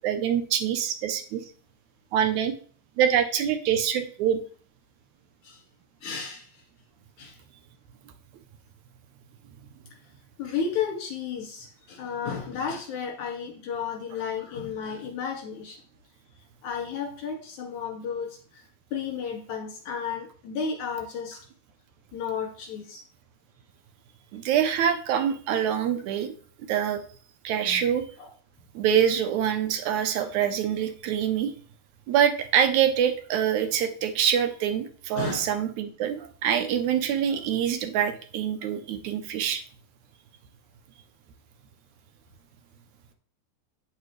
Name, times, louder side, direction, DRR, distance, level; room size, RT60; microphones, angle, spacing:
voice 1, 0.0-1.4 2.1-2.5 3.0-4.4 24.3-26.3 26.7-27.0 27.4-28.0 28.8-31.5 32.1-39.6, right 9 dB, 80° right, 8 dB, 2.2 m, -25 dB
voice 2, 6.0-6.6 7.2-7.4 10.4-15.8 16.6-18.6 18.9-21.4 22.1-23.0 27.6-27.9 28.2-28.3 35.1-35.5, left 6 dB, 80° left, 1 dB, 3.3 m, -33 dB
8.7 x 6.7 x 3.2 m, 0.44 s
omnidirectional pair, 3.3 m